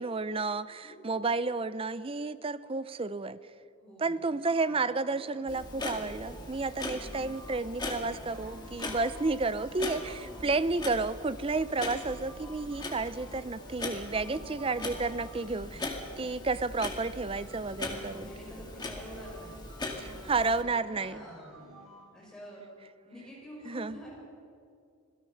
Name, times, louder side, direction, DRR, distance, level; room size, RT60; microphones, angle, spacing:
voice 1, 0.0-3.4 4.0-15.7 16.2-18.3 20.0-21.2 23.7-24.0, right 3 dB, 25° right, 15 dB, 0.5 m, -31 dB
voice 2, 0.8-1.2 3.8-4.2 8.3-8.5 9.7-10.6 14.1-14.6 15.5-16.0 17.8-19.6 20.0-20.4 20.9-21.6 22.1-22.6 23.0-24.2, equal, 5° left, -5 dB, 6.3 m, -49 dB
sound 1, 4.2-22.1, right 1 dB, 80° right, 7.3 m, -51 dB
Clock, 5.5-20.6, left 2 dB, 20° left, 2.0 m, -40 dB
26.5 x 17.0 x 5.8 m, 2.4 s
head